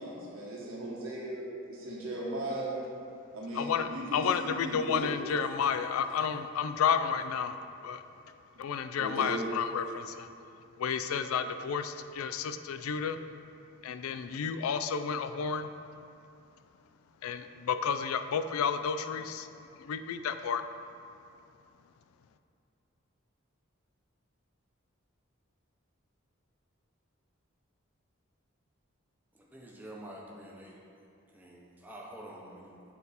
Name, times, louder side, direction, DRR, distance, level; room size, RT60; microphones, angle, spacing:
voice 1, 0.0-2.8 3.3-5.1 9.0-9.5, right 1 dB, 80° right, -5 dB, 1.5 m, -37 dB
voice 2, 3.5-7.5 7.8-8.0 8.6-10.3 10.8-13.2 13.8-15.7 17.2-19.5 19.8-20.6, left 6 dB, 85° left, 10 dB, 0.3 m, -31 dB
voice 3, 29.3-30.8 31.3-32.8, right 1 dB, 10° right, -4 dB, 0.6 m, -47 dB
7.3 x 4.0 x 4.1 m, 2.6 s
head